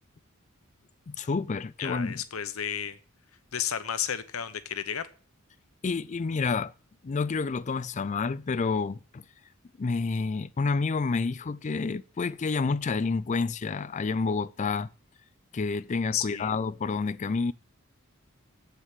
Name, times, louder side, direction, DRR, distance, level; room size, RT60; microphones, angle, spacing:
voice 1, 1.1-2.2 5.8-6.7 7.0-9.2 9.8-14.9 15.5-17.5, left 4 dB, 35° left, 0.4 m, -29 dB
voice 2, 1.8-3.0 3.5-5.1 16.1-16.5, left 9 dB, 80° left, 0.9 m, -32 dB
8.2 x 7.8 x 7.2 m
head